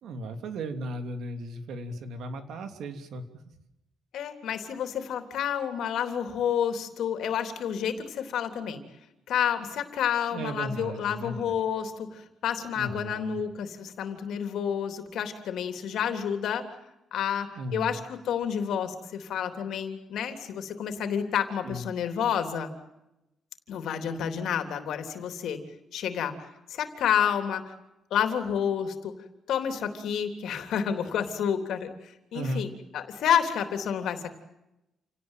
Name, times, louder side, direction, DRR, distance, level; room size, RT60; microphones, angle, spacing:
voice 1, 0.0-3.2 10.3-11.6 12.8-13.4 17.6-18.0 21.6-21.9 32.3-32.6, right 1 dB, 80° right, 8 dB, 3.0 m, -35 dB
voice 2, 4.1-8.8 9.3-16.6 17.1-22.7 23.7-25.6 25.9-26.3 26.7-27.7 28.1-29.1 29.5-32.7 32.9-34.3, left 8 dB, 80° left, 7 dB, 3.4 m, -29 dB
29.0 x 18.5 x 9.2 m, 0.92 s
cardioid pair, 135°, 0 cm